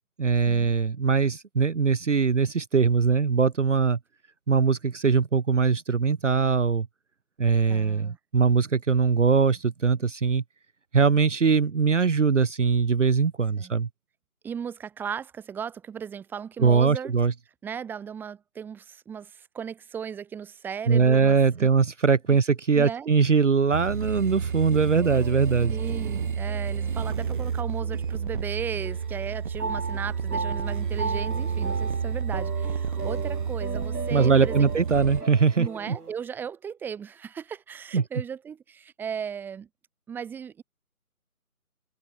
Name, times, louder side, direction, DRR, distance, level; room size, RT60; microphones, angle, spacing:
voice 1, 0.2-4.0 4.5-6.9 7.4-10.4 10.9-13.9 16.6-17.3 20.9-25.8 34.1-36.0 37.9-38.0, right 5 dB, 55° right, 1.4 m, -22 dB
voice 2, 7.7-8.2 13.6-13.8 14.4-17.1 17.6-21.7 22.3-22.4 22.7-23.1 25.7-34.7 35.6-39.7 40.1-40.6, right 7 dB, 5° right, 3.7 m, -36 dB
sound 1, 23.7-35.2, right 6 dB, 35° right, 2.5 m, -30 dB
sound 2, 25.0-28.5 28.8-36.1, right 3 dB, 85° right, 3.5 m, -37 dB
figure-of-eight pair, 165°, 45 cm